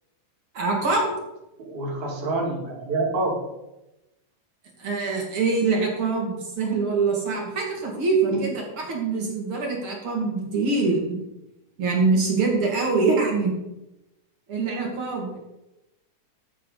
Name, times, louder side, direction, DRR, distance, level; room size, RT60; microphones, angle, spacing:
voice 1, 0.5-1.1 4.8-11.2 11.8-13.6 14.5-15.4, right 4 dB, 45° right, -1 dB, 2.8 m, -24 dB
voice 2, 1.6-3.4 8.3-8.5, right 2 dB, 70° right, -2 dB, 3.8 m, -27 dB
14.0 x 8.4 x 4.0 m, 0.95 s
omnidirectional pair, 3.5 m